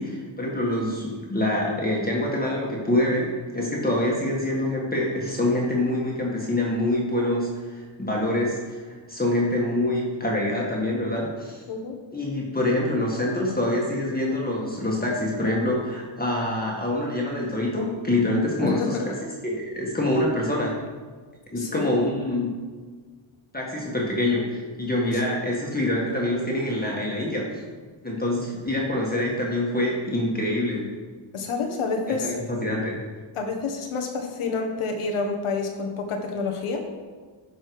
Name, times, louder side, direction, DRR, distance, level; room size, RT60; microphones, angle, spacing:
voice 1, 0.0-11.6 12.1-20.8 21.5-22.5 23.5-27.6 28.0-30.9 32.2-33.0, left 1 dB, 20° left, -3 dB, 1.8 m, -25 dB
voice 2, 18.6-19.1 21.6-21.9 25.1-25.4 31.3-32.4 33.3-36.8, left 4 dB, 90° left, 3 dB, 1.5 m, -28 dB
12.0 x 5.5 x 4.8 m, 1.5 s
wide cardioid pair, 115°, 49 cm